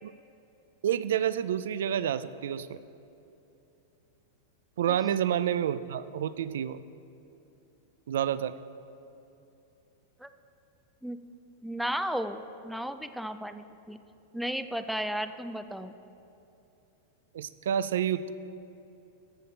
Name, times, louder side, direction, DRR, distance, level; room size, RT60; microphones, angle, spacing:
voice 1, 0.8-2.8 4.8-6.8 8.1-8.6 17.3-18.3, right 9 dB, 85° right, 15 dB, 0.3 m, -29 dB
voice 2, 11.6-14.0 14.3-15.9, equal, ahead, 10 dB, 0.3 m, -34 dB
14.0 x 7.0 x 4.4 m, 2.8 s
supercardioid pair, 150°, 0 cm